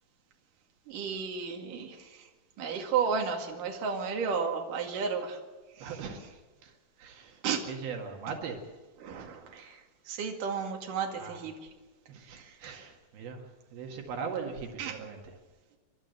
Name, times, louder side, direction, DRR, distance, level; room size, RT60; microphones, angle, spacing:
voice 1, 0.9-2.3 2.6-5.4 5.8-6.0 7.4-7.6 9.0-11.5 12.3-12.8 14.8-15.0, right 6 dB, 65° right, 2 dB, 3.7 m, -33 dB
voice 2, 5.8-6.7 7.0-8.6 11.2-11.5 12.1-15.4, right 5 dB, 85° right, 3 dB, 3.8 m, -40 dB
30.0 x 12.0 x 8.0 m, 1.3 s
omnidirectional pair, 4.2 m